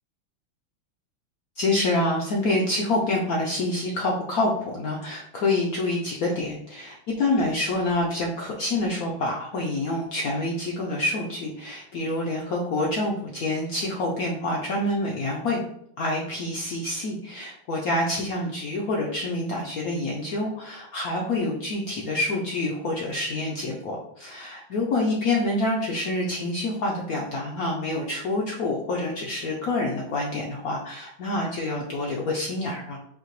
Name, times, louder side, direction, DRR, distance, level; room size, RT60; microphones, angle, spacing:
voice 1, 1.6-15.6 16.0-33.0, left 2 dB, 85° left, -2 dB, 0.7 m, -27 dB
4.7 x 2.8 x 3.0 m, 0.73 s
omnidirectional pair, 2.3 m